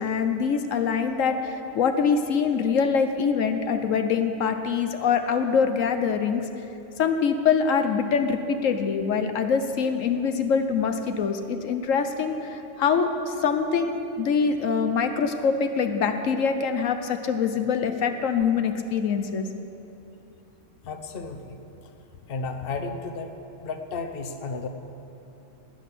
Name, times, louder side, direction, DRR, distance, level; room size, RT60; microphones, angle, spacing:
voice 1, 0.0-6.4 7.0-19.5, left 6 dB, 80° left, 7 dB, 1.2 m, -24 dB
voice 2, 20.8-21.6 22.3-23.3 23.6-24.7, left 4 dB, 50° left, 6 dB, 1.1 m, -33 dB
18.0 x 6.4 x 10.0 m, 2.9 s
omnidirectional pair, 1.3 m